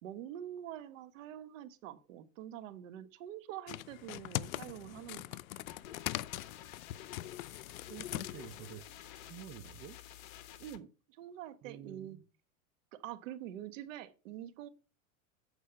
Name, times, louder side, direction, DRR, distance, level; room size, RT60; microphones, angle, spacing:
voice 1, 0.0-5.7 10.6-12.2 12.9-14.7, right 11 dB, 70° right, 1.2 m, -46 dB
sound 1, 3.7-8.8, left 15 dB, 85° left, 0.5 m, -41 dB
sound 2, 5.7-10.8, left 12 dB, 50° left, 1.2 m, -52 dB
voice 2, 7.7-8.9 9.1-10.0 11.6-12.3, right 11 dB, 35° right, 0.7 m, -50 dB
8.4 x 4.7 x 5.7 m
hypercardioid pair, 120°, 40 cm